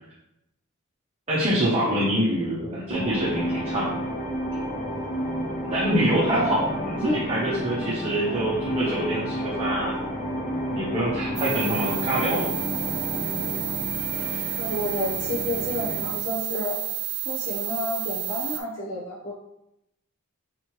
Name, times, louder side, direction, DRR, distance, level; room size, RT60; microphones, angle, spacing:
voice 1, 1.3-4.0 5.7-9.9 10.7-12.5, right 1 dB, 30° right, -7 dB, 0.8 m, -25 dB
sound 1, 2.9-16.2, equal, 35° left, 0.5 m, -31 dB
voice 2, 6.2-6.5 6.9-7.2 14.6-16.8 17.2-19.3, left 1 dB, 65° left, -6 dB, 0.9 m, -30 dB
sound 2, 11.4-18.6, right 12 dB, 85° right, 0.5 m, -30 dB
4.1 x 3.1 x 3.1 m, 0.83 s
head